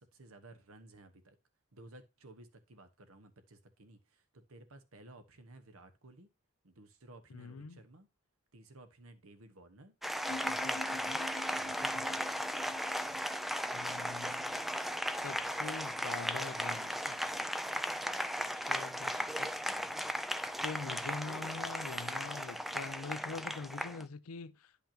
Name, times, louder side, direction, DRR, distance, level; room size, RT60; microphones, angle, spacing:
voice 1, 0.0-1.4 1.7-6.3 6.6-8.1 8.5-9.9 10.3-11.3 11.6-12.4 19.5-20.0, right 2 dB, 75° right, 1.3 m, -56 dB
voice 2, 7.3-7.8 13.7-14.6 15.1-17.5 18.5-19.7 20.6-24.7, left 4 dB, 85° left, 0.6 m, -44 dB
Applause, 10.0-24.0, equal, ahead, 0.3 m, -36 dB
sound 1, 10.2-21.7, left 2 dB, 40° left, 0.6 m, -51 dB
10.5 x 5.5 x 2.9 m
head